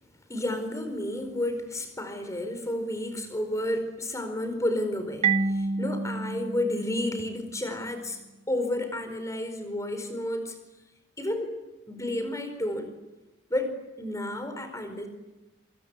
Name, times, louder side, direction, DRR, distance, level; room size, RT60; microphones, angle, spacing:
voice 1, 0.3-8.2 8.5-10.6 11.2-11.5 11.9-12.9 13.5-15.1, left 1 dB, 15° left, 8 dB, 4.7 m, -31 dB
Marimba xylophone, 5.2-7.9, right 4 dB, 35° right, 0.9 m, -29 dB
27.0 x 26.0 x 8.4 m, 1.1 s
head